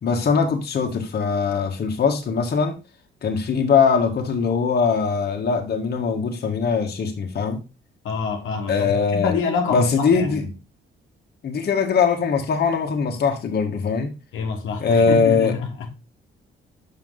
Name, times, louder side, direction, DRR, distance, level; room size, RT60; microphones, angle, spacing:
voice 1, 0.0-2.8 3.2-7.6 8.7-9.3 9.7-10.4 11.4-14.1 14.8-15.5, left 5 dB, 55° left, 1.7 m, -21 dB
voice 2, 8.0-10.5 14.3-15.9, left 5 dB, 80° left, 1.5 m, -26 dB
6.4 x 6.1 x 3.8 m
cardioid pair, 90°, 20 cm